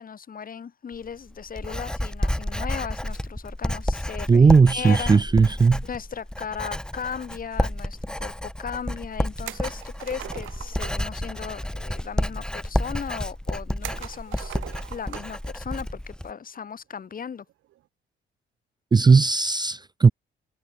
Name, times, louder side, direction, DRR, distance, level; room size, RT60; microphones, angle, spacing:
voice 1, 0.0-5.2 5.8-14.6 14.9-17.4, left 7 dB, 45° left, 3.1 m, -36 dB
Writing, 0.9-16.3, left 1 dB, 5° left, 1.3 m, -30 dB
voice 2, 4.3-5.8 18.9-20.1, right 5 dB, 20° right, 0.4 m, -17 dB
sound 1, 9.4-11.1 13.8-15.4 15.8-15.9 17.5-17.8, right 15 dB, 80° right, 0.8 m, -40 dB
cardioid pair, 90°, 20 cm